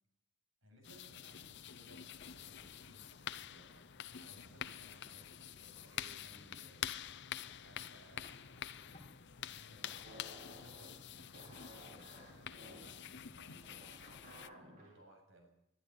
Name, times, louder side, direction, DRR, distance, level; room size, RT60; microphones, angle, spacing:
voice 1, 0.6-7.0 7.6-10.0 10.4-15.5, right 1 dB, 65° right, 3 dB, 7.8 m, -63 dB
sound 1, 0.8-14.5, left 9 dB, 55° left, 0.7 m, -47 dB
sound 2, 2.1-14.6, left 1 dB, 35° left, 2.6 m, -67 dB
sound 3, 9.8-15.0, equal, 45° right, 5.5 m, -57 dB
22.0 x 12.5 x 9.8 m, 0.82 s
head